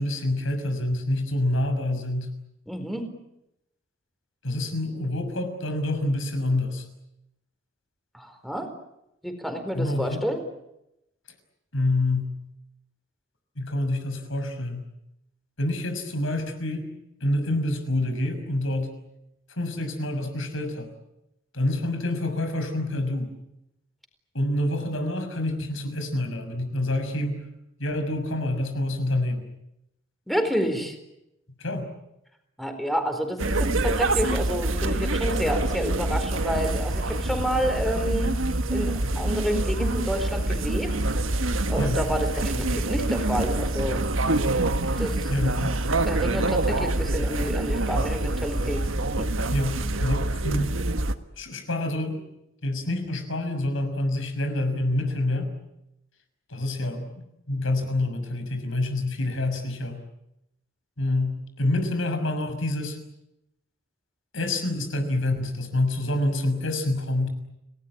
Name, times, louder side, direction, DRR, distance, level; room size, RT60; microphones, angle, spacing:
voice 1, 0.0-2.3 4.4-6.8 9.7-10.2 11.7-12.3 13.6-14.9 15.6-16.9 17.2-18.9 19.5-20.9 21.5-23.4 24.3-27.4 27.8-29.5 31.6-31.9 41.8-42.0 45.3-45.8 49.5-50.7 51.4-52.2 52.6-55.5 56.5-57.1 57.5-60.0 61.0-63.0 64.3-67.3, left 1 dB, 75° left, 8 dB, 6.1 m, -27 dB
voice 2, 2.7-3.1 8.1-8.7 9.2-10.4 30.3-31.0 32.6-38.3 38.7-40.9 41.7-44.0 45.0-45.3 46.1-48.9 49.2-49.3, equal, ahead, 6 dB, 4.3 m, -29 dB
sound 1, 33.4-51.1, right 2 dB, 75° right, 1.6 m, -26 dB
30.0 x 18.5 x 9.9 m, 0.86 s
head